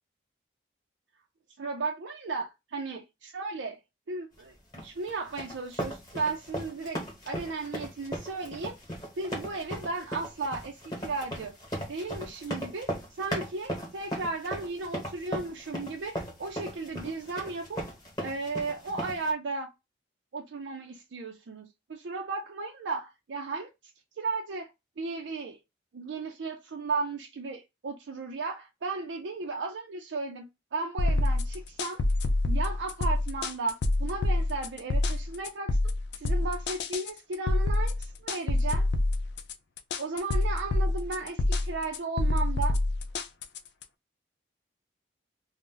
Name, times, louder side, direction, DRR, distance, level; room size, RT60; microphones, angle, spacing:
voice 1, 1.6-3.8 4.1-4.5 4.8-8.8 9.2-11.5 11.9-17.8 18.2-19.7 20.3-23.7 24.2-24.7 25.0-25.6 25.9-32.0 32.5-35.8 36.2-38.9 40.0-42.8, right 3 dB, 85° right, 0.5 m, -35 dB
sound 1, 4.7-19.3, equal, 20° left, 1.1 m, -37 dB
sound 2, 31.0-43.8, left 2 dB, 70° left, 0.4 m, -27 dB
2.5 x 2.1 x 3.7 m
head